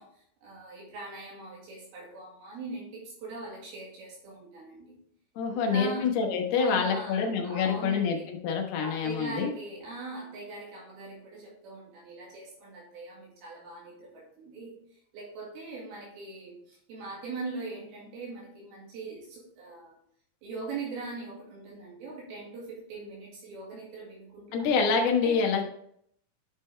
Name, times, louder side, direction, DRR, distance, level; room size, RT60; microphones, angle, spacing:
voice 1, 0.0-4.9 5.5-6.1 6.6-8.3 8.8-14.8 15.1-20.0 20.4-24.7 25.0-25.4, right 3 dB, 80° right, -4 dB, 3.8 m, -41 dB
voice 2, 5.4-9.5 24.5-25.6, left 5 dB, 85° left, 2 dB, 3.2 m, -26 dB
10.5 x 5.6 x 3.2 m, 0.69 s
omnidirectional pair, 4.5 m